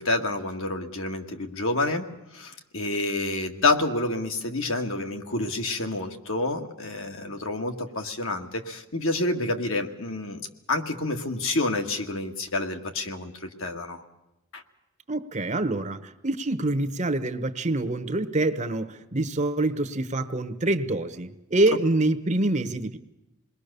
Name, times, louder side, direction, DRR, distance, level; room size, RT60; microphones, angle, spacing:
voice 1, 0.0-14.0 14.5-14.6, left 2 dB, 65° left, 4 dB, 1.9 m, -28 dB
voice 2, 15.1-23.0, right 2 dB, 30° right, 11 dB, 1.0 m, -26 dB
28.0 x 21.0 x 6.8 m, 0.92 s
head